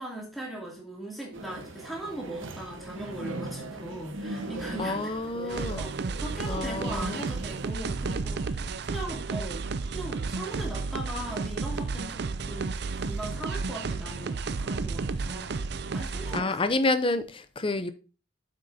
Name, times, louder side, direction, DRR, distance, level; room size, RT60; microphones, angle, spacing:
voice 1, 0.0-9.6 9.9-12.7 13.0-15.6 15.9-16.6, right 1 dB, ahead, 2.5 m, -39 dB
sound 1, 1.3-7.7, right 2 dB, 70° right, 0.9 m, -39 dB
voice 2, 4.8-5.9 6.5-7.3 16.3-17.9, left 2 dB, 25° left, 0.5 m, -29 dB
sound 2, 5.5-16.4, right 4 dB, 50° right, 0.4 m, -32 dB
8.8 x 7.5 x 2.7 m
head